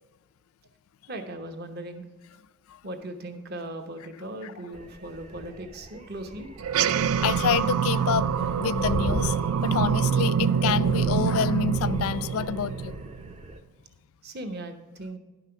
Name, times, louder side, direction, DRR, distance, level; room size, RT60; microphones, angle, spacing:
voice 1, 1.1-2.0 2.8-6.5 14.2-15.2, right 1 dB, 45° right, 1.0 m, -38 dB
sound 1, 4.7-13.6, right 1 dB, 25° right, 0.5 m, -38 dB
sound 2, 6.6-13.3, right 7 dB, 80° right, 0.4 m, -25 dB
voice 2, 7.2-13.0, left 7 dB, 70° left, 0.3 m, -28 dB
11.0 x 5.8 x 5.7 m
head